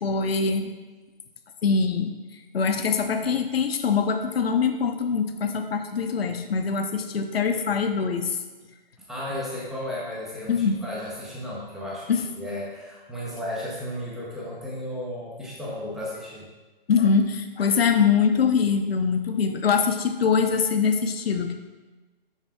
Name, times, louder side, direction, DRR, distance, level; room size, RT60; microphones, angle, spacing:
voice 1, 0.0-0.7 1.6-2.1 2.5-8.3 10.5-10.8 12.1-12.2 16.9-21.5, left 5 dB, 85° left, 6 dB, 0.7 m, -23 dB
voice 2, 9.1-12.1 12.4-16.5, left 1 dB, ahead, -6 dB, 0.6 m, -34 dB
5.7 x 5.5 x 3.5 m, 1.2 s
hypercardioid pair, 155°, 29 cm